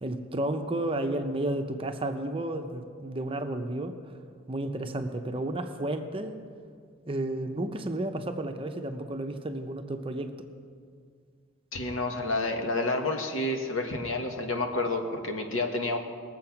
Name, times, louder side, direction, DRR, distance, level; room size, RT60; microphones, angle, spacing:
voice 1, 0.0-4.0 4.5-6.4 7.1-10.3, right 1 dB, 25° right, 6 dB, 0.7 m, -32 dB
voice 2, 11.7-16.0, left 2 dB, 80° left, 4 dB, 1.5 m, -29 dB
20.0 x 7.7 x 5.9 m, 2.1 s
head